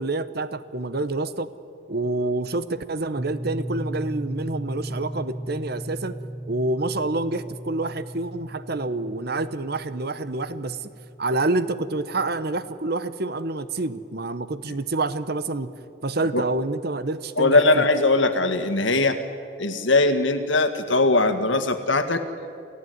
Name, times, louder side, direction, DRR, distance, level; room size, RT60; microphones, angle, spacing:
voice 1, 0.0-1.5 1.9-6.2 6.5-10.9 11.2-15.7 16.0-17.8, right 2 dB, 55° right, 13 dB, 1.0 m, -27 dB
sound 1, 3.2-12.7, right 1 dB, 10° right, 1.4 m, -37 dB
voice 2, 17.4-19.2 19.6-22.2, left 2 dB, 90° left, 9 dB, 1.9 m, -20 dB
29.0 x 16.0 x 9.4 m, 2.5 s
head